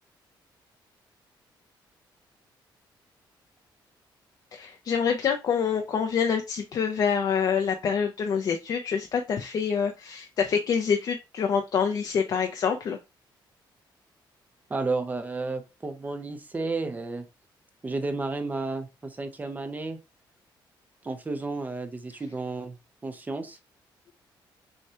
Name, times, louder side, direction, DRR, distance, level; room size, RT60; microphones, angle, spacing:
voice 1, 4.5-13.0, left 6 dB, 50° left, 4 dB, 0.5 m, -26 dB
voice 2, 14.7-17.2 17.8-20.0 21.0-22.8 23.0-23.6, right 3 dB, 20° right, 8 dB, 0.7 m, -32 dB
6.4 x 2.2 x 2.8 m, 0.27 s
cardioid pair, 130°, 9 cm